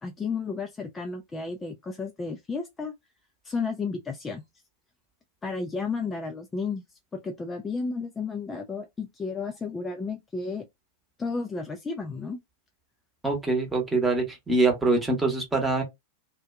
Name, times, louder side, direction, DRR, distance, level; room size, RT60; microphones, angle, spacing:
voice 1, 0.0-2.9 3.4-4.4 5.4-6.8 7.1-10.6 11.2-12.4, left 4 dB, 15° left, 0.3 m, -32 dB
voice 2, 13.2-15.8, right 3 dB, 10° right, 1.0 m, -24 dB
2.5 x 2.2 x 2.2 m
figure-of-eight pair, 90°, 0 cm